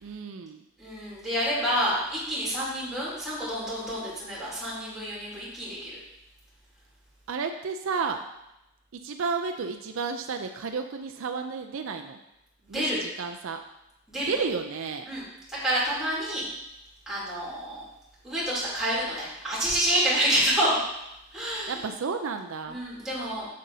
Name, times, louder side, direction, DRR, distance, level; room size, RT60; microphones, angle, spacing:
voice 1, 0.0-0.6 7.3-8.2 8.9-12.2 12.7-13.6 14.3-15.1 21.7-22.8, right 5 dB, 65° right, 6 dB, 0.4 m, -32 dB
voice 2, 0.8-6.0 12.6-13.0 14.1-14.3 15.1-15.2 15.5-16.4 17.1-17.8 18.2-20.8 21.3-21.8 22.7-23.5, right 1 dB, ahead, -9 dB, 3.0 m, -28 dB
7.9 x 7.5 x 2.7 m, 0.88 s
head